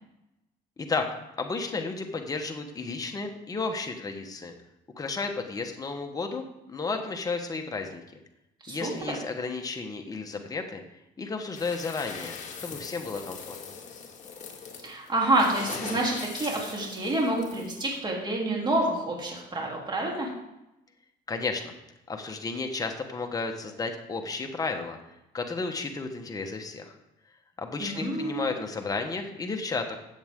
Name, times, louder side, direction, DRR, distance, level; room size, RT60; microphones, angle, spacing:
voice 1, 0.8-4.5 5.0-8.0 8.7-10.8 11.2-13.7 21.3-21.8 22.1-25.0 25.3-26.9 27.6-30.0, left 4 dB, 20° left, 4 dB, 1.2 m, -33 dB
sound 1, 11.5-18.0, left 5 dB, 45° left, 2.0 m, -41 dB
voice 2, 14.8-20.3 27.8-28.5, right 1 dB, 25° right, -2 dB, 3.2 m, -28 dB
14.0 x 7.9 x 3.7 m, 0.90 s
cardioid pair, 110°, 17 cm